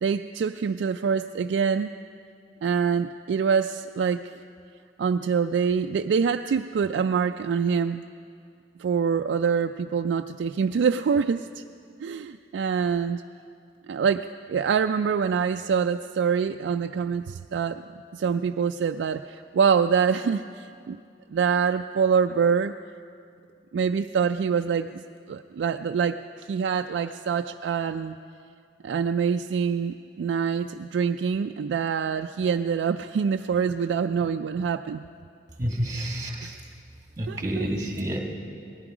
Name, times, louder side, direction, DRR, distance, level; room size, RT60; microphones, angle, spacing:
voice 1, 0.0-1.9 2.6-4.3 5.0-8.0 8.8-11.6 12.0-13.2 13.9-17.8 18.1-21.0 21.3-22.7 23.7-28.2 28.8-35.0 36.4-36.5 37.3-37.7, right 6 dB, 75° right, 6 dB, 0.3 m, -25 dB
voice 2, 35.6-36.6 37.2-38.2, equal, 20° right, 1 dB, 1.9 m, -29 dB
19.0 x 14.5 x 5.0 m, 2.4 s
head